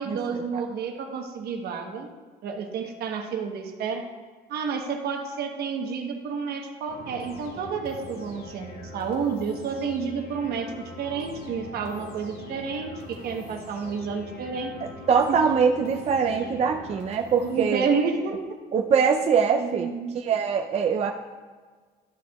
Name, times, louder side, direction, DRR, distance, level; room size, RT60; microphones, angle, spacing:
voice 1, 0.0-2.1 2.4-4.1 4.5-14.8 15.3-15.4 17.4-18.4 19.5-20.2, right 5 dB, 70° right, 4 dB, 1.0 m, -30 dB
sound 1, 6.9-17.6, left 1 dB, 65° left, 1.8 m, -42 dB
voice 2, 15.1-17.9 18.7-21.1, right 6 dB, 40° right, 2 dB, 0.5 m, -23 dB
12.5 x 6.6 x 2.3 m, 1.5 s
cardioid pair, 110°, 17 cm